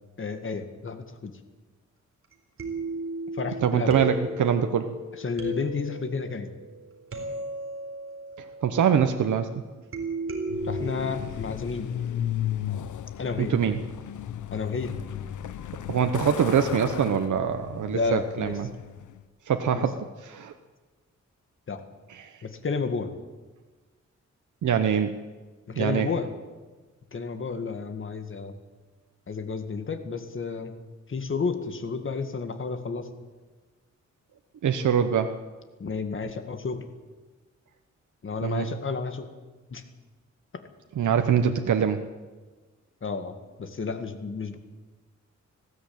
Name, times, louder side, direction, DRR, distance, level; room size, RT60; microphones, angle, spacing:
voice 1, 0.2-1.3 3.4-3.9 5.2-6.5 10.6-11.9 13.2-13.5 14.5-14.9 17.9-18.5 19.7-19.9 21.7-21.8 22.4-23.1 25.7-26.3 27.1-28.5 29.3-30.7 31.1-33.1 35.8-36.8 38.2-39.3 39.7-39.8 43.0-43.3 43.6-44.6, left 4 dB, 45° left, 8 dB, 2.0 m, -31 dB
sound 1, 2.3-2.4 2.6-9.3 9.9-11.2, right 2 dB, 45° right, 3.9 m, -35 dB
voice 2, 3.6-4.9 8.4-9.5 13.4-13.8 15.9-18.7 19.5-20.5 22.1-22.4 24.6-25.1 25.8-26.1 34.6-35.3 38.4-38.7 41.0-42.0, right 8 dB, 85° right, 7 dB, 1.1 m, -24 dB
Truck, 10.5-19.2, left 10 dB, 90° left, 0.9 m, -35 dB
19.5 x 15.5 x 8.8 m, 1.3 s
wide cardioid pair, 135°, 29 cm